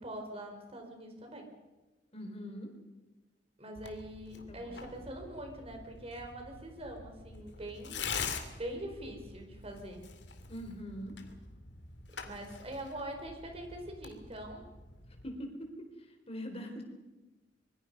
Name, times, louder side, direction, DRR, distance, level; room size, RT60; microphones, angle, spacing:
voice 1, 0.0-1.5 3.6-10.1 12.2-14.7, right 1 dB, 35° right, 4 dB, 4.6 m, -43 dB
voice 2, 2.1-2.7 4.5-4.8 10.5-11.2 15.2-15.7 16.0-16.8, equal, 35° left, 3 dB, 4.3 m, -42 dB
Tearing, 3.7-15.3, left 5 dB, 75° left, 2.5 m, -45 dB
25.5 x 23.0 x 5.5 m, 1.1 s
head